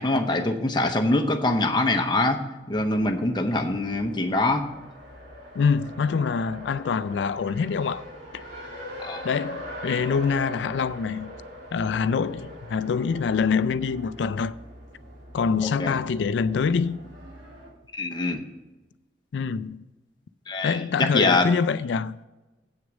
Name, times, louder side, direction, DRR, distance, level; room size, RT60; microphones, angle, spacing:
voice 1, 0.0-2.4 2.7-4.6 9.0-9.2 15.8-16.0 17.9-18.4 20.5-21.5, left 2 dB, 25° left, 0.7 m, -24 dB
Race car auto racing, 2.7-17.7, equal, 90° right, 2.6 m, -42 dB
voice 2, 5.5-8.0 8.3-8.4 9.2-11.3 11.7-14.5 15.3-17.0 19.3-19.8 20.6-22.2, left 5 dB, 70° left, 0.3 m, -25 dB
8.2 x 6.3 x 6.2 m
head